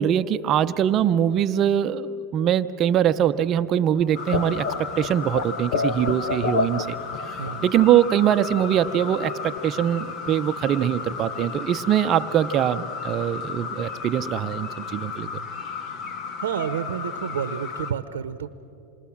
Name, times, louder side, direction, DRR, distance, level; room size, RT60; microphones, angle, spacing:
voice 1, 0.0-7.0 7.3-15.3, right 10 dB, 40° right, 11 dB, 0.7 m, -22 dB
sound 1, 4.0-7.9 8.1-8.2 8.5-9.6 9.9-10.3 10.6-10.7 11.0-11.1 11.3-11.6, left 4 dB, 70° left, 1.2 m, -30 dB
sound 2, 4.2-17.9, left 5 dB, 45° left, 1.5 m, -34 dB
voice 2, 16.4-18.5, right 8 dB, 85° right, 12 dB, 0.8 m, -29 dB
27.5 x 21.0 x 7.3 m, 2.8 s
hypercardioid pair, 105°, 0 cm